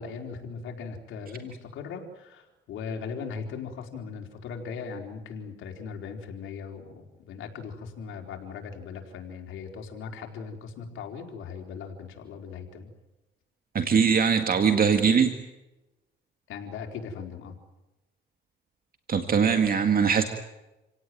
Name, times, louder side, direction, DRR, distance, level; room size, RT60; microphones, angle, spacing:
voice 1, 0.0-12.9 16.5-17.6, left 5 dB, 85° left, 3 dB, 4.2 m, -39 dB
voice 2, 13.7-15.3 19.1-20.2, right 6 dB, 45° right, 6 dB, 2.1 m, -21 dB
28.5 x 17.5 x 9.4 m, 1.0 s
cardioid pair, 90°, 20 cm